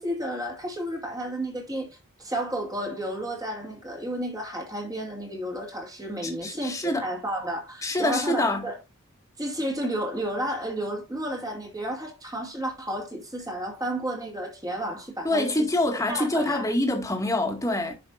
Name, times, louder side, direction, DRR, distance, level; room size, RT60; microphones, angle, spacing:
voice 1, 0.0-1.9 2.2-8.8 9.4-15.7 16.0-16.7, right 1 dB, 15° right, 2.4 m, -32 dB
voice 2, 6.2-7.0 7.8-8.7 15.2-17.9, left 1 dB, 15° left, 2.0 m, -26 dB
10.5 x 5.9 x 2.5 m
head